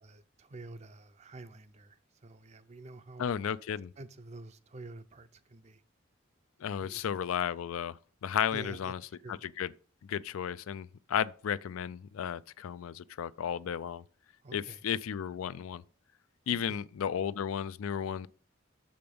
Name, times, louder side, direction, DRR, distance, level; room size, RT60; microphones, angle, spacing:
voice 1, 0.0-3.4 4.0-5.8 6.8-7.2 8.5-9.4 14.4-14.8 16.5-16.9, right 2 dB, 30° right, 0.5 m, -49 dB
voice 2, 3.2-3.9 6.6-8.0 8.2-9.0 9.6-9.7 10.1-14.0 14.5-15.8 16.5-18.3, left 8 dB, 80° left, 0.3 m, -33 dB
6.8 x 5.1 x 5.3 m
head